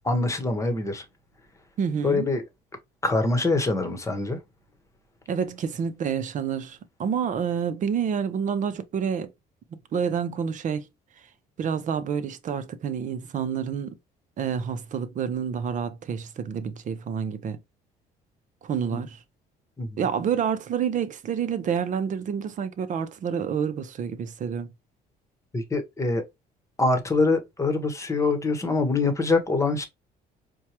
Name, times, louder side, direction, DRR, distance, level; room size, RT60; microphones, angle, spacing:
voice 1, 0.0-1.0 2.0-2.4 3.0-4.4 18.9-19.0 19.8-20.0 25.5-26.2 26.8-29.8, left 3 dB, 15° left, 1.0 m, -24 dB
voice 2, 1.8-2.3 5.3-9.3 9.7-10.9 11.6-14.0 14.4-17.6 18.6-19.2 20.0-24.7, right 7 dB, 50° right, 0.7 m, -28 dB
4.5 x 2.2 x 2.9 m
cardioid pair, 110°, 17 cm